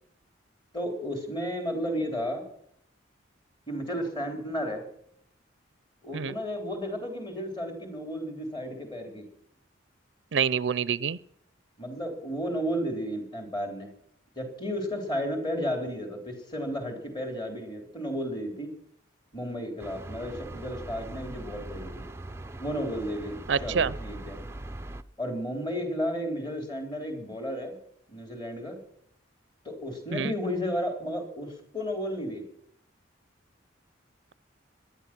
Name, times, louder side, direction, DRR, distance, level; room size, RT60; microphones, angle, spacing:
voice 1, 0.7-2.5 3.7-4.8 6.0-9.3 11.8-13.9 14.4-18.7 19.3-22.0 22.6-24.4 25.2-27.8 28.1-28.8 29.7-32.4, equal, 25° left, 5 dB, 3.5 m, -33 dB
voice 2, 10.3-11.2 23.5-23.9 30.1-30.3, right 6 dB, 70° right, 20 dB, 0.5 m, -26 dB
sound 1, 19.8-25.0, right 1 dB, 15° right, 0.5 m, -41 dB
19.0 x 11.5 x 6.0 m, 0.69 s
head